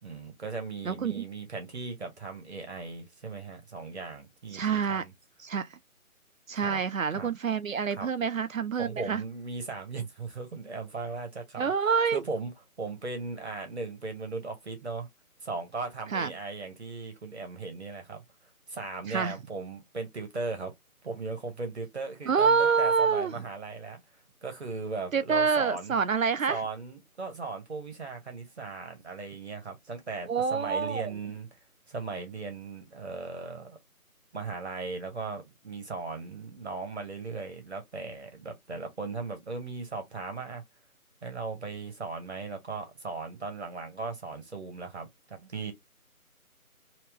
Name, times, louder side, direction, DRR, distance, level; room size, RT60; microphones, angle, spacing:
voice 1, 0.0-5.1 6.6-6.8 7.1-7.3 7.9-8.1 8.8-11.7 12.1-12.5 12.8-15.1 15.4-18.2 18.7-20.7 21.0-24.0 24.4-26.0 26.5-31.5 31.9-33.8 34.3-40.6 41.2-45.7, right 4 dB, 45° right, 1.3 m, -37 dB
voice 2, 0.8-1.2 4.5-5.0 5.4-5.8 6.5-9.2 11.6-12.2 16.1-16.3 19.1-19.4 22.3-23.4 25.1-26.6 30.3-31.1, right 6 dB, 65° right, 0.5 m, -27 dB
3.0 x 2.9 x 3.4 m
figure-of-eight pair, 160°, 44 cm